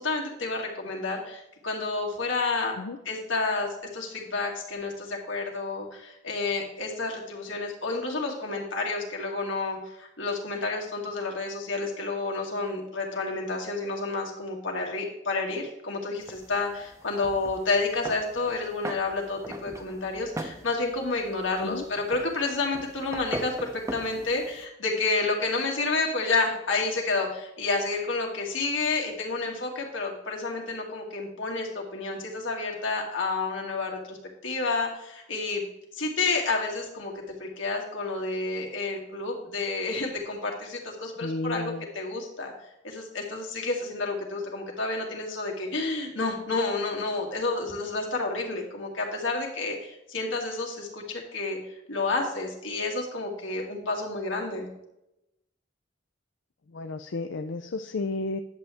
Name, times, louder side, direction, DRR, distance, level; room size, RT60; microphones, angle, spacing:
voice 1, 0.0-2.7 3.1-34.2 34.4-35.6 35.9-42.5 42.8-51.6 51.9-54.7, left 3 dB, 85° left, -1 dB, 2.3 m, -30 dB
sound 1, 16.2-24.7, right 1 dB, 15° right, 0.6 m, -41 dB
voice 2, 41.2-41.8 56.7-58.4, left 3 dB, 65° left, 7 dB, 0.5 m, -32 dB
10.5 x 7.6 x 3.5 m, 0.86 s
head